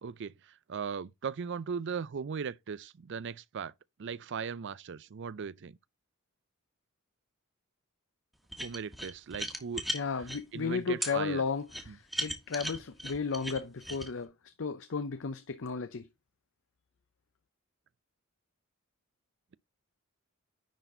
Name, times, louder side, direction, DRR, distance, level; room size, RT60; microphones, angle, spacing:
voice 1, 0.0-3.7 4.0-5.8 8.6-9.8 10.5-11.4 11.9-12.0, right 6 dB, 55° right, 0.4 m, -38 dB
sound 1, 8.5-10.4 11.0-11.1 11.7-14.1, equal, ahead, 1.4 m, -36 dB
voice 2, 9.9-14.3 14.6-16.1, left 5 dB, 60° left, 0.6 m, -34 dB
10.0 x 4.2 x 3.8 m
head